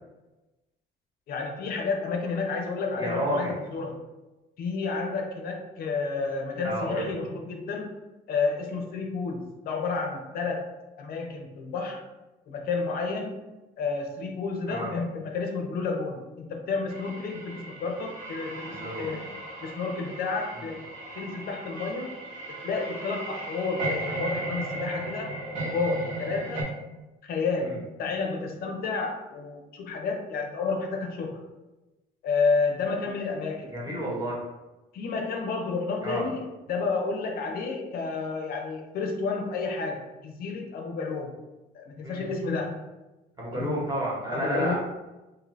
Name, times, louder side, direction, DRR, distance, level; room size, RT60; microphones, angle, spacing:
voice 1, 1.3-4.0 4.6-8.0 8.3-12.0 12.5-13.4 13.8-19.2 19.6-20.8 21.2-22.1 22.6-25.3 25.6-26.7 27.2-31.4 32.2-33.8 34.9-41.3 41.7-42.8 43.5-43.8 44.3-44.7, left 4 dB, 60° left, 2 dB, 0.5 m, -30 dB
voice 2, 3.0-3.5 6.6-7.1 14.7-14.9 18.7-19.1 27.6-27.8 33.7-34.4 36.0-36.2 42.0-42.2 43.4-44.7, right 1 dB, 25° right, -4 dB, 1.0 m, -30 dB
sound 1, 16.9-26.6, right 1 dB, 55° right, 1.1 m, -36 dB
2.7 x 2.5 x 3.1 m, 1.1 s
cardioid pair, 110°, 17 cm